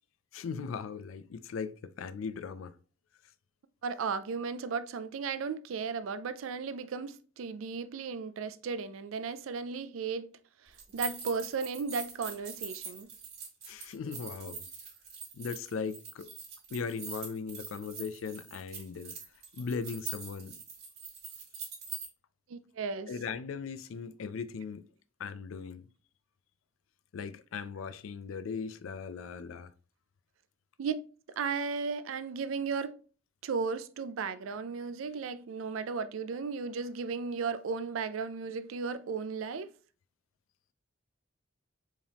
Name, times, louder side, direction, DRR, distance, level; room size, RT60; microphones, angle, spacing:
voice 1, 0.3-2.8 13.7-14.7 15.3-16.3 16.7-19.2 19.5-20.6 23.1-24.8 25.2-25.8 27.1-29.7, left 5 dB, 80° left, 0.4 m, -38 dB
voice 2, 3.8-10.3 10.6-13.1 22.5-23.1 30.8-31.0 31.4-32.9 33.4-39.7, right 5 dB, 80° right, 0.4 m, -35 dB
sound 1, 10.7-22.1, right 6 dB, 55° right, 1.9 m, -43 dB
4.6 x 3.4 x 2.9 m
head